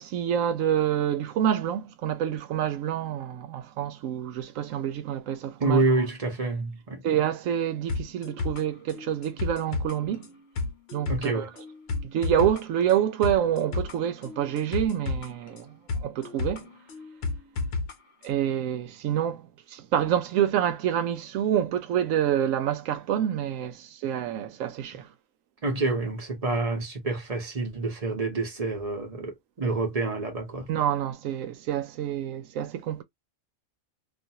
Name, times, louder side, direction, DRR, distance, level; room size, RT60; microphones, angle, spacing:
voice 1, 0.0-5.8 7.0-10.3 10.9-11.5 12.0-16.7 18.2-25.1 30.7-33.0, right 10 dB, 85° right, 1.0 m, -27 dB
voice 2, 5.6-7.0 11.1-11.5 17.6-17.7 25.6-30.7, right 3 dB, 35° right, 0.7 m, -27 dB
sound 1, 7.9-17.9 18.2-18.3, left 3 dB, 60° left, 0.8 m, -33 dB
2.5 x 2.4 x 2.7 m
omnidirectional pair, 1.3 m